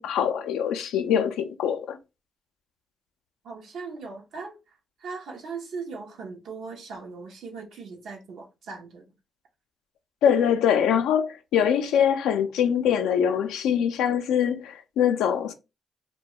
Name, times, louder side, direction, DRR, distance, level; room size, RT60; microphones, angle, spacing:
voice 1, 0.0-2.0 10.2-15.5, left 8 dB, 90° left, 0.3 m, -23 dB
voice 2, 3.4-4.6 5.0-9.0, right 4 dB, 80° right, 0.6 m, -39 dB
2.3 x 2.2 x 2.8 m
supercardioid pair, 60°, 0 cm